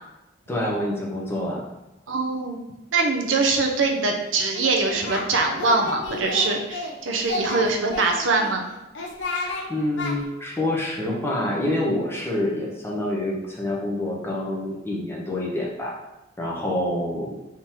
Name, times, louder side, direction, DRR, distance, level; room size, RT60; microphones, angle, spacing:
voice 1, 0.5-1.6 9.4-16.0 16.4-17.4, left 1 dB, 10° left, -3 dB, 0.8 m, -27 dB
voice 2, 2.1-2.6 2.9-8.7, right 3 dB, 80° right, 2 dB, 0.7 m, -23 dB
Singing, 4.5-5.3 5.6-6.9 7.2-8.5 8.9-9.6 10.0-10.1, left 2 dB, 65° left, 0.8 m, -31 dB
3.7 x 3.0 x 4.3 m, 0.98 s
head